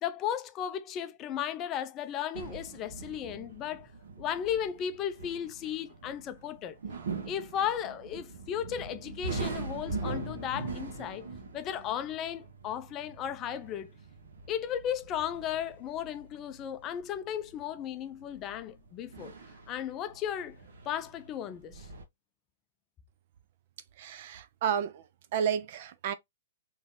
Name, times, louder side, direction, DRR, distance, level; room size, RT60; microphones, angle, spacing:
voice 1, 0.0-3.9 4.2-6.8 7.2-11.3 11.5-13.9 14.5-19.3 19.7-20.6 20.9-21.9, left 9 dB, 25° left, 0.4 m, -35 dB
sound 1, 2.3-22.0, right 3 dB, 75° right, 1.2 m, -42 dB
voice 2, 24.0-25.1 25.3-26.1, right 8 dB, 50° right, 0.5 m, -31 dB
3.9 x 3.1 x 2.5 m
hypercardioid pair, 150°, 0 cm